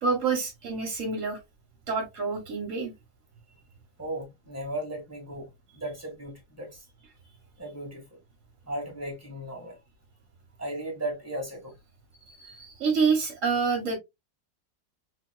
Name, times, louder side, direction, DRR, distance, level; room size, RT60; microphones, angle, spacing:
voice 1, 0.0-1.4 1.9-2.9 12.2-14.0, right 5 dB, 55° right, 1.1 m, -27 dB
voice 2, 4.0-6.9 7.6-8.2 8.7-9.8 10.6-11.7, right 1 dB, 10° right, 1.2 m, -36 dB
3.7 x 2.8 x 2.2 m
omnidirectional pair, 1.9 m